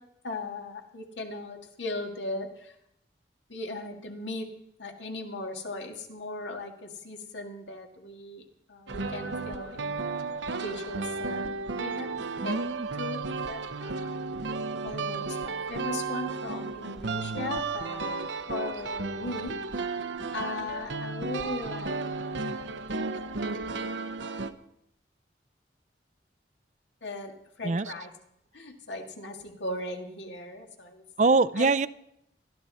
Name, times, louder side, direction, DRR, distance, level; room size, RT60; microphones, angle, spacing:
voice 1, 0.2-2.7 3.5-4.5 4.8-10.2 10.6-11.4 11.7-12.1 12.4-12.6 13.0-14.1 14.8-18.1 18.5-19.6 20.3-22.0 22.5-23.4 27.0-28.1 28.5-31.0 31.6-31.7, left 2 dB, 85° left, 3 dB, 2.1 m, -38 dB
sound 1, 8.9-24.5, right 3 dB, 85° right, 0.9 m, -33 dB
voice 2, 12.4-12.9 27.6-27.9 31.2-31.9, right 3 dB, 40° right, 17 dB, 0.5 m, -24 dB
20.0 x 13.0 x 4.2 m, 0.77 s
head